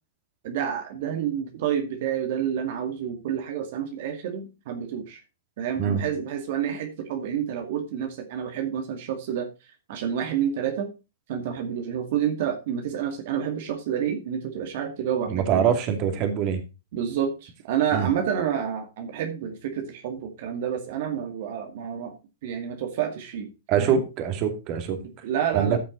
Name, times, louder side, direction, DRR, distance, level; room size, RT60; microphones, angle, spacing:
voice 1, 0.4-5.2 5.6-10.9 11.3-15.7 16.9-22.1 22.4-24.0 25.0-25.8, right 9 dB, 60° right, 5 dB, 2.1 m, -29 dB
voice 2, 15.3-16.6 17.9-18.1 23.7-25.0 25.5-25.8, right 8 dB, 40° right, 7 dB, 2.4 m, -24 dB
14.0 x 6.2 x 4.0 m, 0.28 s
hypercardioid pair, 130°, 0 cm